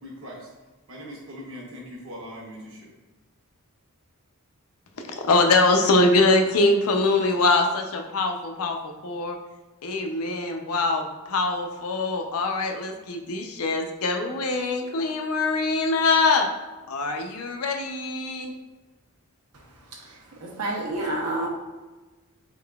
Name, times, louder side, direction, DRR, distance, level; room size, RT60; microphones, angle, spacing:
voice 1, 0.0-0.5 0.9-2.9, equal, 60° right, -3 dB, 1.0 m, -40 dB
voice 2, 5.1-9.4 9.8-16.5 16.9-18.5, left 3 dB, 75° left, 4 dB, 0.5 m, -23 dB
voice 3, 20.0-21.5, right 2 dB, 85° right, -1 dB, 0.9 m, -29 dB
3.8 x 3.7 x 2.3 m, 1.2 s
head